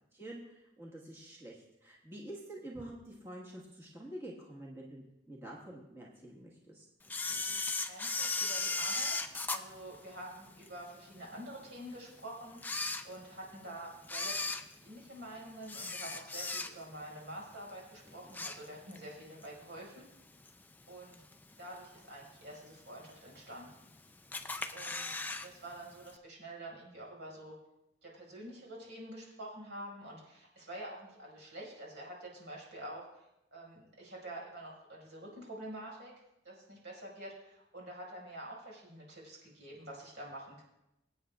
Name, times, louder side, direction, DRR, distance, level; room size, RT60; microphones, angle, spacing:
voice 1, 0.1-6.9, right 1 dB, 15° right, -4 dB, 1.4 m, -47 dB
Camera, 7.1-10.7 11.2-11.3 12.0-12.1 12.5-13.5 14.0-17.0 17.4-17.7 18.0-19.1 19.4-19.5 20.5-20.6 21.1-21.5 22.0-22.1 22.2-22.3 22.5-22.6 23.4-23.9 24.3-25.5 25.7-25.8 26.1-26.2, left 3 dB, 10° left, 0.4 m, -36 dB
voice 2, 7.8-20.0 20.9-21.2 21.6-23.7 24.7-27.5 28.0-33.2 33.5-36.1 36.4-40.6, right 1 dB, 75° right, -3 dB, 5.1 m, -47 dB
24.0 x 8.8 x 2.4 m, 0.90 s
head